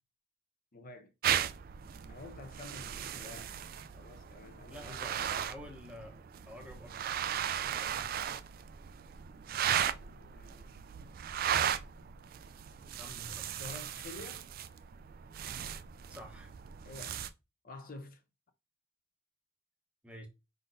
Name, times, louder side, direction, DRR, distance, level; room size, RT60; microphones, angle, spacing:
voice 1, 0.7-1.1 2.1-3.5 3.9-5.0 7.5-8.4 9.8-10.8 13.3-14.5 16.8-17.2 17.6-18.2, left 3 dB, 45° left, 0.6 m, -50 dB
sound 1, 1.2-17.3, right 9 dB, 45° right, 0.3 m, -37 dB
voice 2, 4.7-7.1 7.8-8.0 13.0-13.5 16.1-16.5 20.0-20.3, equal, 5° right, 0.8 m, -49 dB
5.2 x 3.8 x 2.6 m
head